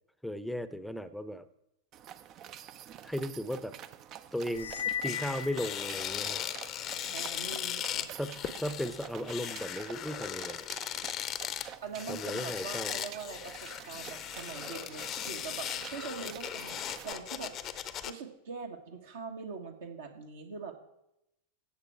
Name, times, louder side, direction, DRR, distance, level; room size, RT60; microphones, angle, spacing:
voice 1, 0.2-1.5 3.0-3.7 4.3-4.7 5.0-6.4 8.1-10.7 12.1-13.0, equal, ahead, 13 dB, 0.7 m, -36 dB
sound 1, 1.9-17.1, right 10 dB, 35° right, 0.5 m, -48 dB
sound 2, 4.5-6.4, left 9 dB, 75° left, 0.8 m, -37 dB
sound 3, 4.6-4.7 5.1-18.1, left 11 dB, 30° left, 0.7 m, -38 dB
voice 2, 7.1-8.1 11.8-16.8 17.0-17.5 18.0-20.8, right 5 dB, 60° right, 3 dB, 1.4 m, -42 dB
16.0 x 6.9 x 4.6 m, 0.84 s
figure-of-eight pair, 90°, 0 cm